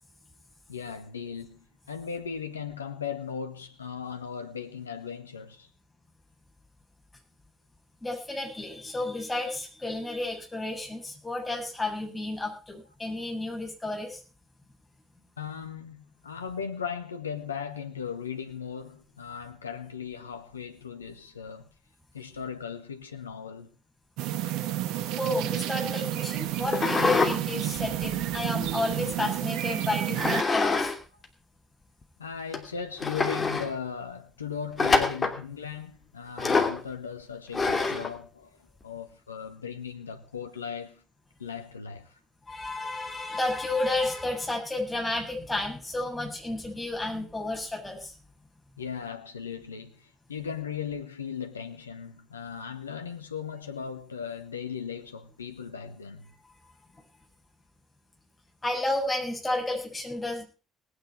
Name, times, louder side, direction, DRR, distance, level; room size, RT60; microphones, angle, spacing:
voice 1, 0.7-5.7 15.4-21.7 22.1-23.7 32.2-41.0 41.4-42.2 48.8-56.3, left 7 dB, 85° left, 1.1 m, -37 dB
voice 2, 8.0-14.2 25.2-30.9 42.5-48.1 58.6-60.4, left 2 dB, 15° left, 7.6 m, -32 dB
sound 1, 24.2-30.4, right 13 dB, 65° right, 1.0 m, -30 dB
sound 2, 26.7-27.4 27.8-29.1 30.2-31.0 31.2-31.3 32.0-32.1 32.5-32.6 33.0-33.7 34.8-35.4 36.4-36.8 37.5-38.1, left 4 dB, 30° left, 2.8 m, -26 dB
20.0 x 9.5 x 4.7 m
figure-of-eight pair, 50°, 0 cm